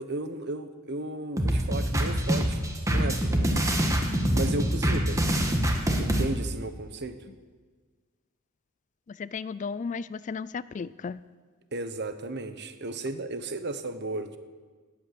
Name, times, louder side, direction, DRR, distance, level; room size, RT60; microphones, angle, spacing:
voice 1, 0.0-2.6 2.9-3.7 4.3-5.3 6.0-7.2 11.7-14.4, right 2 dB, 55° right, 10 dB, 1.1 m, -34 dB
sound 1, 1.4-6.2, equal, 15° right, 1.6 m, -25 dB
voice 2, 9.2-11.2, left 5 dB, 35° left, 18 dB, 0.3 m, -34 dB
19.0 x 8.7 x 7.6 m, 1.5 s
head